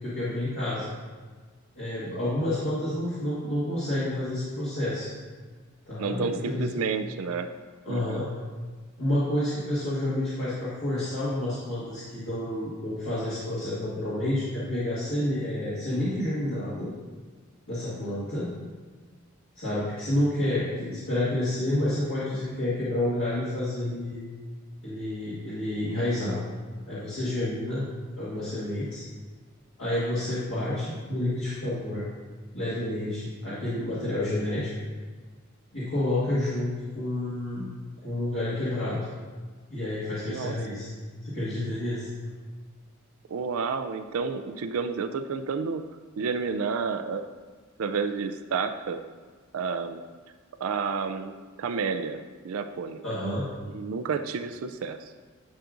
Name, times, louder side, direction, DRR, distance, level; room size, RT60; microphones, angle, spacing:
voice 1, 0.0-0.9 1.7-5.1 5.9-6.7 7.8-8.3 9.0-16.9 17.7-18.5 19.5-24.2 24.8-26.4 26.8-27.9 28.2-29.0 29.8-32.0 32.5-34.7 35.7-37.7 38.0-39.0 39.7-40.9 41.2-42.1 53.0-53.4, left 1 dB, 65° left, -10 dB, 1.7 m, -29 dB
voice 2, 6.0-7.5 7.9-8.2 40.3-40.8 43.3-45.8 46.2-47.3 47.8-49.0 49.5-50.0 50.6-53.0 53.7-55.1, right 5 dB, 80° right, 8 dB, 0.4 m, -30 dB
10.5 x 4.9 x 2.5 m, 1.4 s
head